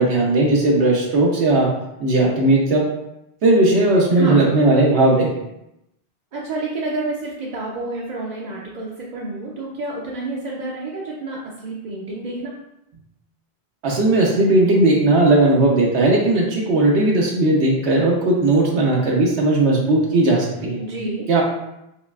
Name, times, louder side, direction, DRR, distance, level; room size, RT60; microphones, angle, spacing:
voice 1, 0.0-1.7 2.0-2.8 3.4-5.3 13.8-20.8 21.3-21.4, right 2 dB, 80° right, -3 dB, 1.0 m, -17 dB
voice 2, 4.1-4.5 6.3-12.5 20.8-21.3, right 2 dB, 55° right, -4 dB, 0.5 m, -29 dB
4.9 x 2.4 x 2.3 m, 0.86 s
omnidirectional pair, 1.1 m